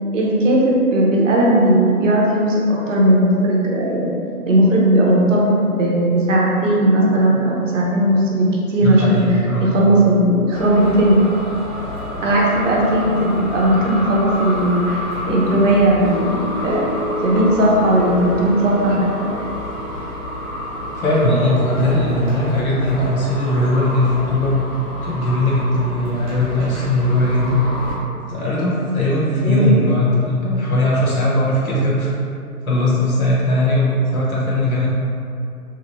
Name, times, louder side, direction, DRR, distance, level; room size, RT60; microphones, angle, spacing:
voice 1, 0.1-4.1 4.5-11.2 12.2-14.9 15.3-16.8 17.2-19.3 29.4-29.8, right 1 dB, 55° right, -3 dB, 0.7 m, -16 dB
voice 2, 8.8-9.8 21.0-24.6 25.0-27.6 28.3-32.1 32.6-34.9, left 1 dB, 65° left, -6 dB, 1.2 m, -19 dB
sound 1, 10.5-27.9, equal, 30° right, 1.0 m, -29 dB
Guitar, 15.3-21.8, equal, 45° left, 0.7 m, -29 dB
3.0 x 2.3 x 3.0 m, 2.5 s
hypercardioid pair, 155°, 46 cm